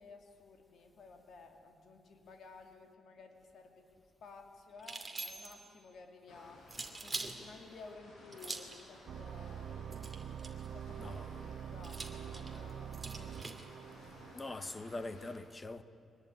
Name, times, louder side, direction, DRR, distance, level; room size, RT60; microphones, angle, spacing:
voice 1, 0.0-3.9 4.2-6.6 7.0-9.8 10.5-13.6, left 4 dB, 65° left, 2.7 m, -55 dB
sound 1, 4.8-5.7 6.7-7.4 8.3-8.8 9.9-10.7 11.8-13.7, right 3 dB, 20° right, 2.5 m, -43 dB
sound 2, 6.3-15.3, left 1 dB, 80° left, 8.0 m, -57 dB
sound 3, 9.1-14.3, right 8 dB, 55° right, 0.5 m, -45 dB
voice 2, 10.9-11.3 14.3-15.8, left 2 dB, 20° left, 1.1 m, -43 dB
24.0 x 20.0 x 9.6 m
cardioid pair, 120°, 0 cm